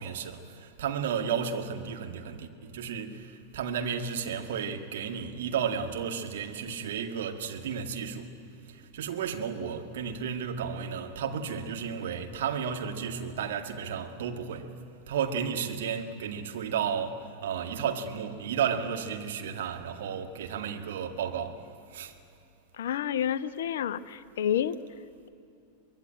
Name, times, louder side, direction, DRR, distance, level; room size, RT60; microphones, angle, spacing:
voice 1, 0.0-8.4 8.7-14.7 15.1-21.6 21.9-22.1, right 7 dB, 60° right, 1.9 m, -33 dB
voice 2, 22.8-24.7, left 9 dB, 60° left, 0.7 m, -29 dB
24.5 x 21.5 x 9.0 m
figure-of-eight pair, 90°, 0 cm